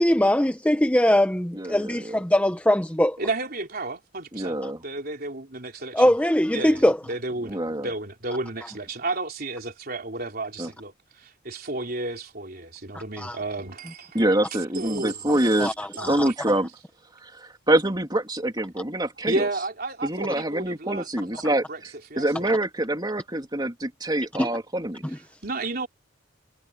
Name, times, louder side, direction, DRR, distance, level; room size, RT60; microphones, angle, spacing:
voice 1, 0.0-3.2 5.9-7.0 13.2-13.4 15.6-16.3 24.4-24.5 25.0-25.2, left 1 dB, 5° left, 1.0 m, -21 dB
voice 2, 1.5-2.2 4.3-4.8 7.5-7.9 10.6-10.7 14.1-15.7 16.1-16.7 17.2-19.4 20.0-21.7 22.2-25.0, right 1 dB, 20° right, 3.1 m, -25 dB
voice 3, 3.2-6.1 6.5-16.3 19.3-21.8 22.1-22.5 25.1-25.9, right 2 dB, 50° right, 4.0 m, -33 dB
head